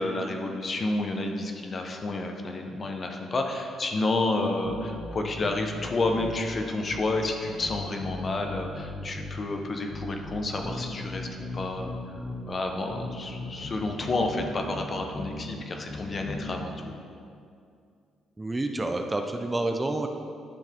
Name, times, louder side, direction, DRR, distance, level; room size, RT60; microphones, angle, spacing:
voice 1, 0.0-11.3 11.5-12.0 12.5-16.9, left 2 dB, 40° left, 3 dB, 0.9 m, -30 dB
sound 1, 4.6-6.5 6.9-9.5 9.9-12.5 12.9-15.4 15.9-16.6, left 2 dB, 20° left, 1.2 m, -38 dB
voice 2, 18.4-20.1, right 2 dB, 20° right, 5 dB, 0.6 m, -28 dB
10.5 x 5.6 x 3.5 m, 2.3 s
supercardioid pair, 70°, 0 cm